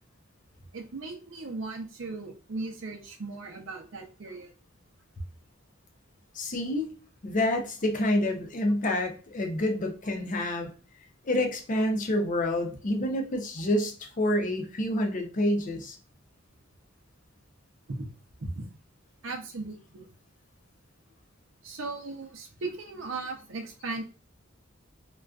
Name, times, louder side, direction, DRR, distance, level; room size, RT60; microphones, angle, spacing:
voice 1, 0.7-4.5 17.9-18.1 18.5-18.7 19.2-20.1 21.6-24.0, right 3 dB, 65° right, 3 dB, 0.6 m, -37 dB
voice 2, 6.3-6.9 7.2-10.7 11.2-16.0, left 1 dB, 40° left, 3 dB, 0.5 m, -28 dB
2.4 x 2.2 x 2.3 m, 0.38 s
head